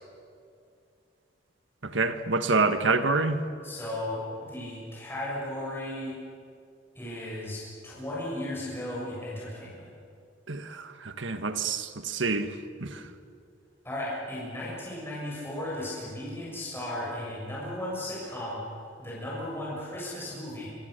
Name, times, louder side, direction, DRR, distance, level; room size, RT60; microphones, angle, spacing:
voice 1, 1.8-3.4 10.5-12.5 12.8-13.0, right 3 dB, 75° right, 8 dB, 1.6 m, -27 dB
voice 2, 3.6-6.1 6.9-9.9 13.8-18.6 19.0-20.7, left 1 dB, 15° left, -7 dB, 7.3 m, -35 dB
27.5 x 25.0 x 6.8 m, 2.4 s
head